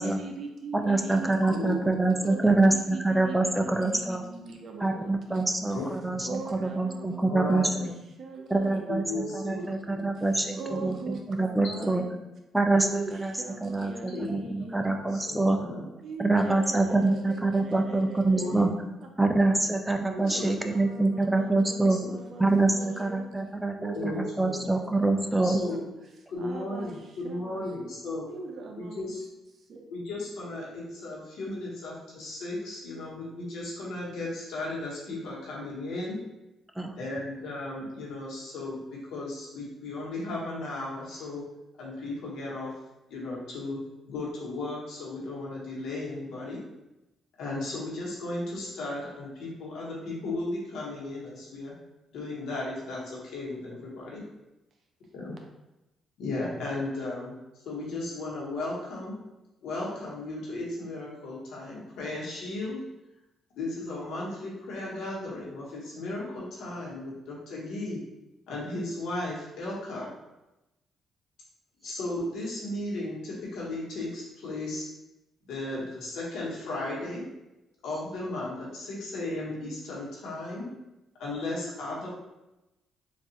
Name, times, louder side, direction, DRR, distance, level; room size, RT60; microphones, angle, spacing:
voice 1, 0.0-5.5 6.2-9.8 10.2-12.1 12.8-14.9 16.0-18.6 19.0-19.1 20.1-23.3 23.8-25.8 26.4-27.7 28.3-29.2 29.5-29.8, right 4 dB, 60° right, 2 dB, 0.6 m, -41 dB
voice 2, 0.7-4.2 4.8-7.9 8.5-12.0 12.5-13.3 13.6-15.6 16.2-18.7 19.2-22.0 22.4-25.6 36.8-36.9, right 2 dB, 10° right, 5 dB, 0.4 m, -25 dB
voice 3, 1.5-1.9 5.7-6.2 7.3-7.7 8.9-10.0 10.7-11.0 14.1-14.5 15.1-15.8 18.4-18.7 20.3-20.6 23.9-24.5 25.4-25.8 26.3-28.3 28.8-29.3 29.9-36.2 37.0-41.4 41.8-42.7 43.1-43.8 44.1-46.6 47.4-51.7 52.1-54.2 55.1-55.3 56.2-57.3 57.6-59.2 59.6-62.8 63.6-68.0 68.5-70.1 71.8-74.9 75.4-77.2 77.8-80.7 81.2-82.1, left 2 dB, 80° left, -5 dB, 1.2 m, -35 dB
4.1 x 2.5 x 2.9 m, 0.96 s
cardioid pair, 90°, 0 cm